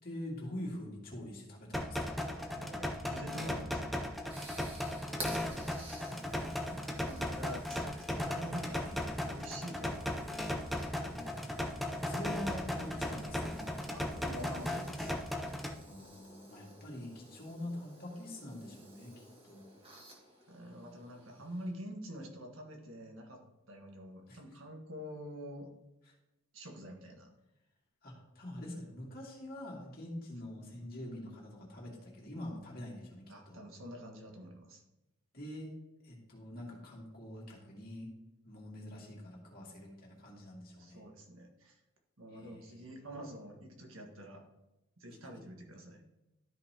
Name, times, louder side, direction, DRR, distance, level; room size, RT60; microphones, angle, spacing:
voice 1, 0.0-2.2 5.0-6.2 11.1-13.6 15.8-19.1 19.4-19.8 24.3-24.4 26.1-26.2 28.0-33.6 35.3-35.7 36.0-38.1 38.4-41.0 42.3-43.0, left 1 dB, 45° left, -2 dB, 2.2 m, -45 dB
sound 1, 1.7-15.7, left 1 dB, ahead, 0.5 m, -37 dB
voice 2, 2.4-4.0 6.7-8.9 9.3-10.7 13.9-15.1 20.5-23.4 23.7-25.7 26.5-27.3 33.3-34.8 40.8-41.8 42.2-44.5 45.0-46.0, equal, 70° right, 2 dB, 1.5 m, -47 dB
sound 2, 3.7-21.7, right 1 dB, 25° right, 1.5 m, -53 dB
sound 3, 8.5-16.1, equal, 50° right, 1.9 m, -56 dB
13.0 x 5.5 x 2.9 m, 0.96 s
head